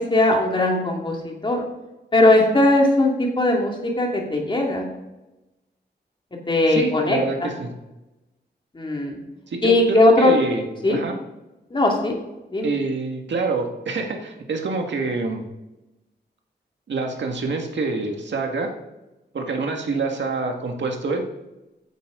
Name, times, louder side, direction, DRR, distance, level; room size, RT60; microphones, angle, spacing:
voice 1, 0.0-1.6 2.1-3.7 4.0-4.9 6.5-7.5 8.7-9.2 9.6-10.3 10.8-11.0 11.7-12.1 12.5-12.7, left 2 dB, 25° left, 0 dB, 2.4 m, -19 dB
voice 2, 6.7-7.7 9.5-11.1 12.6-15.4 16.9-18.7 19.3-21.2, right 3 dB, 80° right, 3 dB, 1.9 m, -26 dB
14.0 x 10.5 x 3.8 m, 1.0 s
wide cardioid pair, 150°, 18 cm